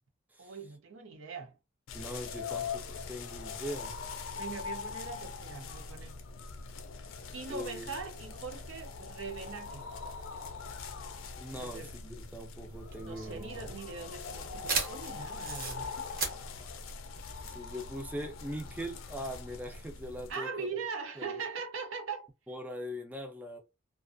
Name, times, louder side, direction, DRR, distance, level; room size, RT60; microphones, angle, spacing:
voice 1, 0.4-1.5 4.3-6.2 7.3-9.8 11.5-11.9 13.0-15.9 20.3-22.3, right 5 dB, 85° right, 0.6 m, -41 dB
sound 1, 1.9-20.3, left 5 dB, 85° left, 0.4 m, -42 dB
voice 2, 1.9-4.0 7.5-7.9 11.3-13.6 17.5-20.7 21.2-21.4 22.5-23.6, equal, 10° right, 0.4 m, -41 dB
sound 2, 12.8-17.9, right 4 dB, 45° right, 0.7 m, -37 dB
2.4 x 2.3 x 2.4 m
head